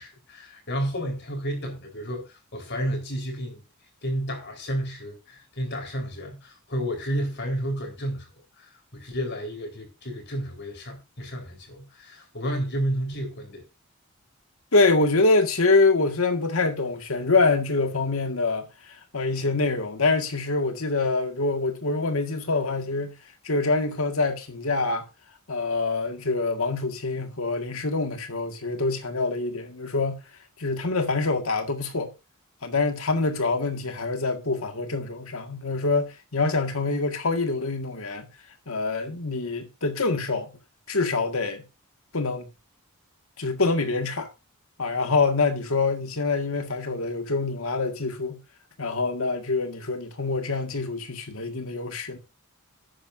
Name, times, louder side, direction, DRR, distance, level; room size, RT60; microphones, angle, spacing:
voice 1, 0.0-3.6 4.0-8.3 8.6-13.6, equal, 50° left, 4.4 m, -31 dB
voice 2, 14.7-23.1 23.4-25.1 25.5-30.2 30.6-32.1 32.6-38.3 38.7-40.5 40.9-41.6 42.1-42.5 43.4-44.3 44.8-48.4 48.8-52.2, left 3 dB, 75° left, 1.9 m, -25 dB
12.0 x 9.8 x 2.7 m
head